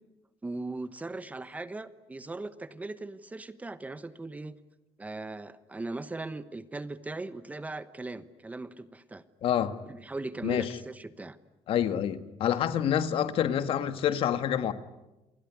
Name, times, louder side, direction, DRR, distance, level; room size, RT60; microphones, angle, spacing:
voice 1, 0.4-4.6 5.0-9.2 9.9-11.4, right 2 dB, 15° right, 1.1 m, -39 dB
voice 2, 9.4-9.8 10.4-10.7 11.7-14.7, left 10 dB, 65° left, 1.7 m, -27 dB
28.5 x 21.0 x 9.6 m
cardioid pair, 135°, 10 cm